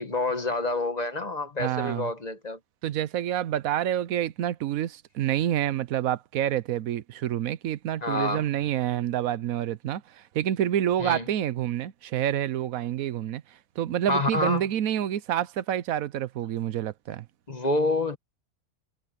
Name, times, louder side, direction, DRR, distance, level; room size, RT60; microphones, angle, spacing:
voice 1, 0.0-2.6 8.0-8.4 11.0-11.2 14.1-14.6 17.5-18.2, left 2 dB, 30° left, 1.4 m, -27 dB
voice 2, 1.6-2.1 2.8-13.4 13.8-17.3, right 11 dB, 90° right, 1.2 m, -28 dB
omnidirectional pair, 1.4 m